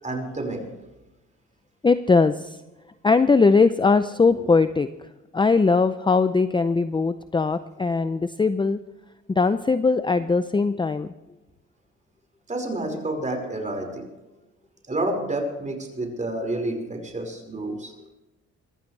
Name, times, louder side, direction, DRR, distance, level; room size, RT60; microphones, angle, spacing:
voice 1, 0.0-0.7 4.3-4.5 12.5-14.1 14.9-17.9, right 2 dB, 25° right, 3 dB, 5.2 m, -29 dB
voice 2, 1.8-2.6 3.0-4.9 5.3-8.8 9.4-11.1, left 4 dB, 15° left, 12 dB, 0.6 m, -20 dB
23.0 x 15.5 x 3.3 m, 1.0 s
cardioid pair, 90°, 30 cm